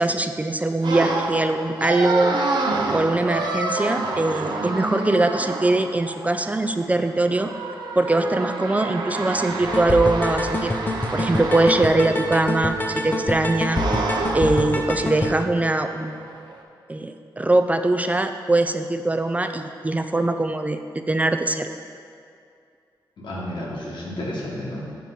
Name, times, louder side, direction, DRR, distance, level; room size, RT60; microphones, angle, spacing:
voice 1, 0.0-2.4 2.9-7.5 8.0-10.7 11.1-13.8 14.3-16.3 16.9-20.8 21.1-21.7, right 2 dB, 20° right, 7 dB, 0.3 m, -22 dB
sound 1, 0.8-12.3 13.7-15.2 15.5-16.6, right 3 dB, 65° right, 0.7 m, -29 dB
sound 2, 9.6-15.3, left 1 dB, 25° left, 0.6 m, -26 dB
voice 2, 23.2-24.8, left 1 dB, 85° left, -5 dB, 1.5 m, -31 dB
6.9 x 6.0 x 3.9 m, 2.4 s
cardioid pair, 85°, 8 cm